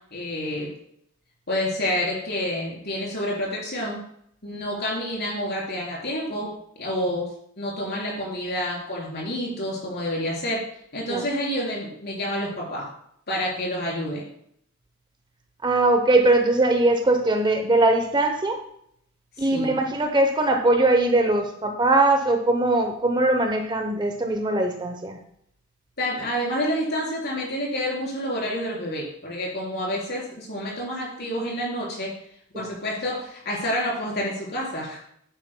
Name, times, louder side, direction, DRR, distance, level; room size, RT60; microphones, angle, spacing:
voice 1, 0.1-0.7 1.5-4.0 4.4-7.3 7.6-10.6 10.9-12.9 13.3-14.2 19.4-19.7 26.0-32.1 32.5-35.0, equal, 55° left, -3 dB, 3.9 m, -28 dB
voice 2, 15.6-18.6 19.4-25.2 32.5-32.8, right 2 dB, 25° right, 5 dB, 0.8 m, -21 dB
11.0 x 9.9 x 2.2 m, 0.70 s
head